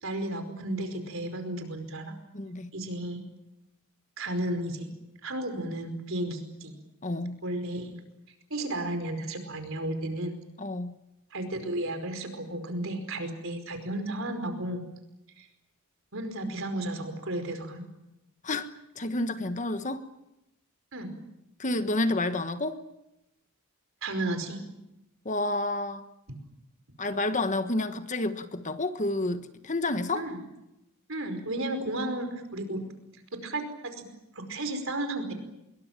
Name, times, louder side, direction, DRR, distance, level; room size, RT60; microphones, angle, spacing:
voice 1, 0.0-2.1 2.7-3.2 4.2-4.9 5.2-6.7 7.4-8.0 8.5-10.4 11.3-14.8 15.4-15.5 16.1-17.8 20.9-21.1 24.0-24.6 30.1-30.4 31.1-32.8 33.3-34.1 34.3-35.3, right 1 dB, 60° right, 8 dB, 5.0 m, -33 dB
voice 2, 2.3-2.7 7.0-7.4 10.6-10.9 18.4-18.7 19.0-20.0 21.6-22.8 25.2-26.0 27.0-30.3, left 2 dB, 35° left, 10 dB, 1.3 m, -29 dB
25.0 x 22.5 x 9.0 m, 0.93 s
head